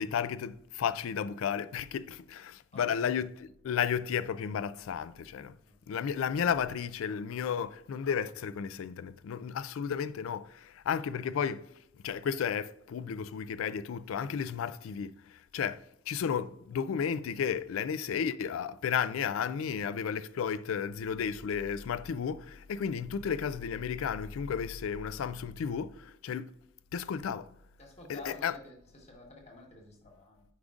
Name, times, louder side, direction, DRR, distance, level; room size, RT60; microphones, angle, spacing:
voice 1, 0.0-3.3 3.6-5.5 5.9-11.7 12.0-15.1 15.5-26.5 26.9-27.5 28.1-28.5, left 7 dB, 80° left, 0.3 m, -33 dB
voice 2, 2.7-3.1 5.6-5.8 27.8-30.4, left 2 dB, 30° left, 1.3 m, -50 dB
8.5 x 5.2 x 2.4 m
head